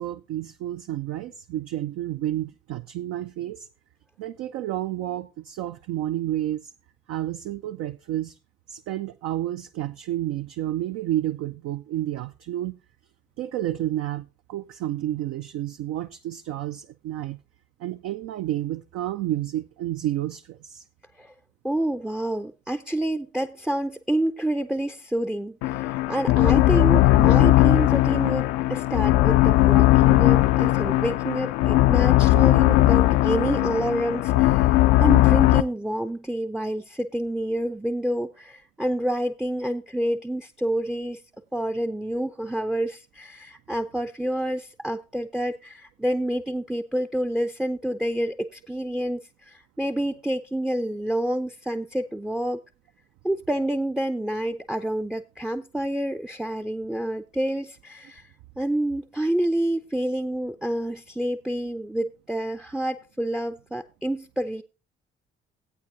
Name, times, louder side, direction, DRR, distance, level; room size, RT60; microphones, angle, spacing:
voice 1, 0.0-3.7 4.2-6.7 7.1-8.3 8.7-12.8 13.4-17.4 17.8-20.8, right 13 dB, 55° right, 0.5 m, -30 dB
voice 2, 21.6-41.2 41.5-52.6 53.2-58.2 58.6-64.6, right 1 dB, ahead, 0.5 m, -28 dB
sound 1, 25.6-35.6, left 16 dB, 60° left, 0.5 m, -18 dB
14.0 x 8.7 x 2.7 m
figure-of-eight pair, 40°, 30 cm